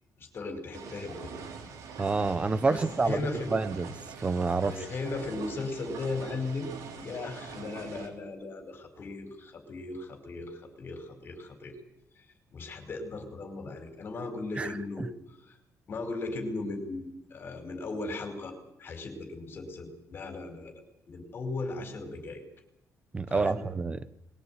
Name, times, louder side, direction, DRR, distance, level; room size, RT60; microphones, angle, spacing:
voice 1, 0.2-1.3 2.7-3.5 4.6-11.8 12.2-12.3 12.5-15.1 15.5-15.6 15.9-20.7 21.1-22.4 23.3-23.6, left 3 dB, 40° left, 6 dB, 5.0 m, -37 dB
sound 1, 0.7-8.1, right 5 dB, 75° right, 4.7 m, -44 dB
voice 2, 2.0-3.2 3.5-3.9 4.2-4.7 14.6-15.1 23.1-24.0, right 4 dB, 20° right, 13 dB, 1.1 m, -28 dB
21.5 x 17.5 x 9.4 m, 0.83 s
cardioid pair, 165°, 6 cm